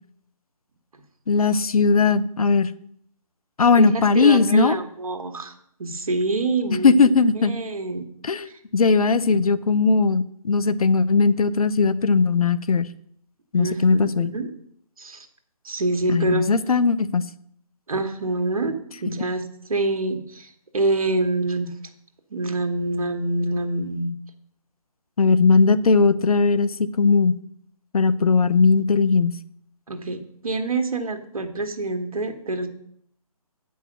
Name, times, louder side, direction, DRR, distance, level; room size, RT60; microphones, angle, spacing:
voice 1, 1.3-2.7 3.6-4.8 6.8-7.5 8.2-8.5 8.7-12.9 13.5-14.3 16.1-17.3 25.2-27.4 27.9-29.4, left 4 dB, 70° left, 15 dB, 0.7 m, -18 dB
voice 2, 3.7-5.5 5.8-7.0 7.3-8.0 8.5-8.6 13.5-14.5 15.0-15.3 15.6-16.5 17.9-21.7 22.3-24.1 25.5-25.6 29.9-32.7, right 2 dB, 65° right, 5 dB, 1.5 m, -26 dB
8.8 x 5.5 x 6.5 m, 0.67 s
figure-of-eight pair, 155°, 19 cm